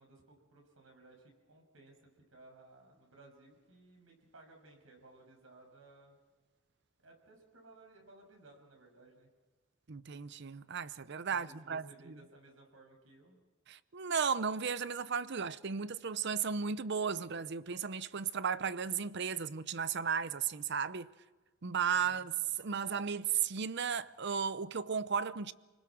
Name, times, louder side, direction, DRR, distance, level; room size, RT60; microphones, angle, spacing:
voice 1, 0.0-6.2 7.0-9.3 11.3-13.4 21.9-22.4, right 2 dB, 85° right, 6.6 m, -59 dB
voice 2, 9.9-12.1 13.7-21.1 21.6-25.5, right 6 dB, 60° right, 0.7 m, -35 dB
29.0 x 20.0 x 6.1 m
head